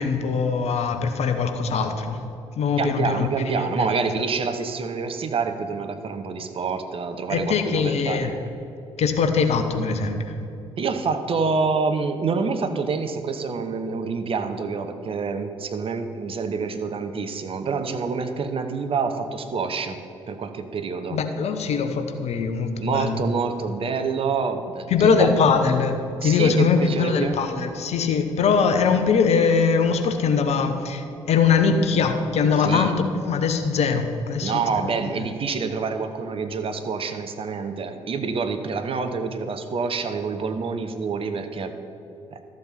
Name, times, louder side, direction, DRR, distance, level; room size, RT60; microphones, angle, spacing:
voice 1, 0.0-2.2 2.6-4.0 7.3-8.3 9.0-10.3 21.1-23.2 24.9-34.8 35.2-35.3, left 5 dB, 50° left, 7 dB, 1.0 m, -22 dB
voice 2, 2.8-8.4 10.8-21.2 22.8-25.3 26.2-27.4 32.6-32.9 34.4-41.8 42.3-42.4, right 5 dB, 40° right, 8 dB, 0.9 m, -27 dB
13.0 x 7.4 x 5.9 m, 2.9 s
figure-of-eight pair, 45°, 14 cm